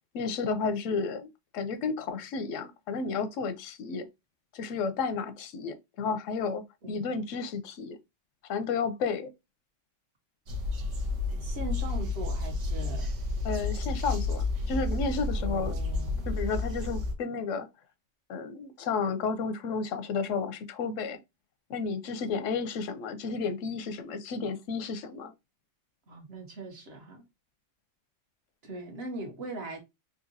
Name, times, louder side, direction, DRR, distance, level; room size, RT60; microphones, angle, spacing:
voice 1, 0.1-4.1 4.5-8.0 8.5-9.3 13.4-15.8 16.3-17.7 18.3-21.2 21.7-25.3, left 5 dB, 85° left, 1.0 m, -32 dB
sound 1, 10.5-17.1, left 3 dB, 80° right, 1.1 m, -31 dB
voice 2, 11.3-13.1 15.4-16.3 26.1-27.2 28.6-29.8, right 2 dB, 55° right, 1.2 m, -40 dB
3.8 x 2.7 x 2.6 m
omnidirectional pair, 1.3 m